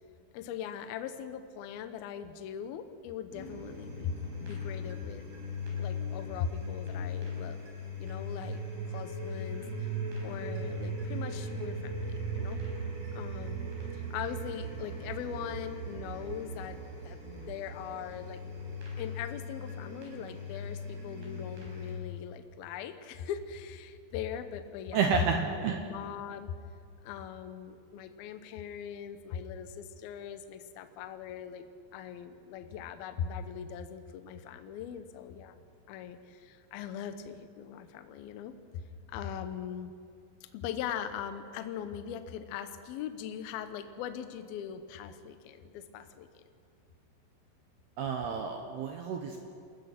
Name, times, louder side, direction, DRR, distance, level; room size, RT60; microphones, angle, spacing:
voice 1, 0.3-5.3 5.8-7.6 8.0-8.6 8.9-9.9 10.2-12.6 13.1-18.4 19.0-26.6 27.0-31.6 31.9-35.6 35.9-38.8 39.1-39.9 40.5-46.4, left 8 dB, 80° left, 9 dB, 2.2 m, -40 dB
sound 1, 3.3-22.0, equal, 50° right, 6.4 m, -38 dB
voice 2, 24.9-25.9 48.0-49.5, right 6 dB, 75° right, 4 dB, 2.5 m, -30 dB
28.5 x 15.5 x 5.9 m, 2.3 s
omnidirectional pair, 5.7 m